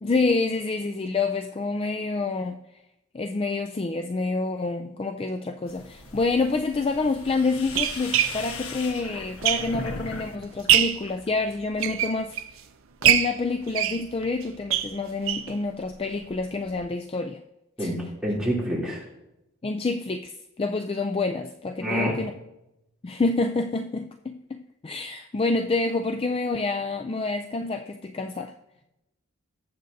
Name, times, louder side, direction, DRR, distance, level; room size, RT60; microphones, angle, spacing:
voice 1, 0.0-2.6 3.1-12.4 13.0-17.4 17.8-17.9 19.6-22.3 23.0-28.5, left 3 dB, 25° left, 7 dB, 0.3 m, -27 dB
sound 1, 5.7-10.3 10.6-11.3, left 3 dB, 80° left, 1.2 m, -39 dB
sound 2, 6.1-6.3 7.1-10.0 10.4-11.1 11.6-12.6 13.0-15.6 15.9-16.0 16.3-16.4 16.8-16.9, right 10 dB, 65° right, 0.6 m, -24 dB
voice 2, 17.8-19.0 21.8-22.2, equal, 5° right, -6 dB, 3.0 m, -27 dB
19.0 x 7.8 x 2.7 m, 0.90 s
head